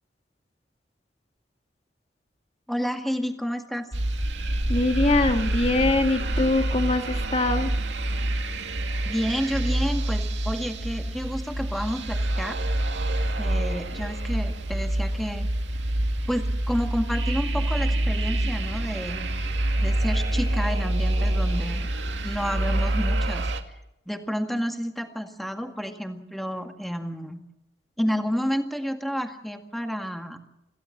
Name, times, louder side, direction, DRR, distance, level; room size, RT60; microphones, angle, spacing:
voice 1, 2.7-3.9 9.0-12.6 13.4-15.5 16.3-19.3 19.8-21.9 22.2-23.4 24.1-27.4 28.0-30.4, equal, ahead, 5 dB, 1.9 m, -30 dB
sound 1, 3.9-23.6, right 1 dB, 85° right, 2.4 m, -26 dB
voice 2, 4.7-7.7, left 2 dB, 35° left, 6 dB, 1.9 m, -23 dB
27.0 x 16.5 x 7.4 m, 0.87 s
head